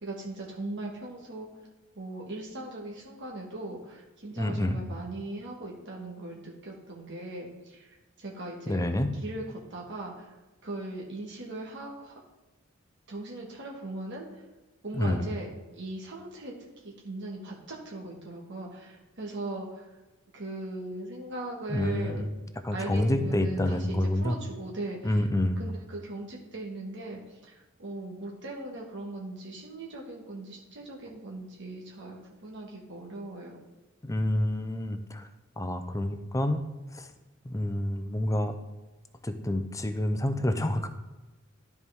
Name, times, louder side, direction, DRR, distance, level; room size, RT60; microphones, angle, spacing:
voice 1, 0.0-1.5 1.9-7.9 8.2-8.9 9.2-9.4 9.7-10.3 10.6-12.2 13.1-14.4 14.8-19.9 20.3-22.2 22.7-25.3 25.6-33.6, right 2 dB, 60° right, -2 dB, 1.6 m, -39 dB
voice 2, 4.4-4.8 8.7-9.1 15.0-15.2 21.7-22.3 22.6-24.3 25.0-25.6 34.0-35.3 35.6-36.6 36.9-37.1 37.4-38.5 39.2-40.9, left 1 dB, 15° left, 8 dB, 0.6 m, -28 dB
12.5 x 4.7 x 3.5 m, 1.1 s
head